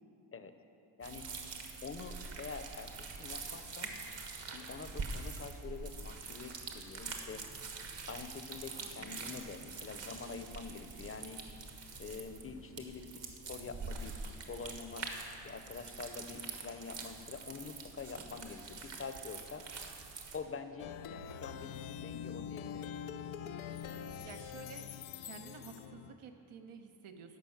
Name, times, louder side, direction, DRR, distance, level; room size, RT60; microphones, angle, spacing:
sound 1, 1.0-20.4, right 4 dB, 60° right, 1.4 m, -45 dB
voice 1, 1.8-3.9 4.5-7.4 8.1-11.4 12.0-15.1 15.4-19.6 20.3-22.9, left 5 dB, 30° left, 9 dB, 0.7 m, -46 dB
voice 2, 8.7-9.5 24.2-24.9 25.2-27.4, right 6 dB, 85° right, 5 dB, 1.0 m, -52 dB
Plucked string instrument, 20.8-26.1, left 8 dB, 80° left, 0.6 m, -44 dB
12.0 x 5.3 x 7.2 m, 2.7 s
cardioid pair, 85°, 48 cm